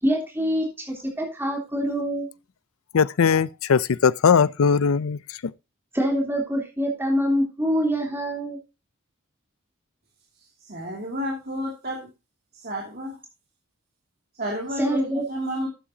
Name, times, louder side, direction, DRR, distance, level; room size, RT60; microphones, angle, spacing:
voice 1, 0.0-2.3 5.9-8.6 14.8-15.2, equal, 10° right, 3.2 m, -25 dB
voice 2, 2.9-5.2, left 6 dB, 75° left, 0.5 m, -19 dB
voice 3, 10.7-12.1 12.6-13.1 14.4-15.7, equal, 45° right, 2.5 m, -31 dB
12.5 x 8.7 x 2.8 m
head